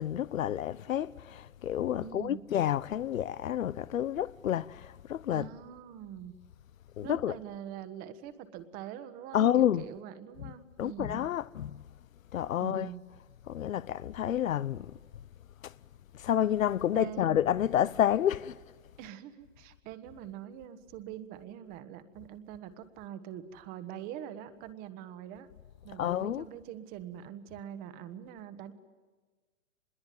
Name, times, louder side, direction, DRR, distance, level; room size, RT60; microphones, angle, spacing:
voice 1, 0.0-5.5 7.0-7.4 9.3-9.9 10.4-10.5 10.8-11.8 12.3-12.9 13.5-14.9 15.6-15.7 16.1-18.6 26.0-26.5, left 10 dB, 90° left, 0.8 m, -29 dB
voice 2, 2.0-2.4 5.3-6.3 7.0-11.2 12.6-13.0 16.9-17.4 19.0-25.5 25.8-28.7, right 10 dB, 25° right, 1.4 m, -44 dB
25.5 x 21.5 x 9.4 m
hypercardioid pair, 155°, 39 cm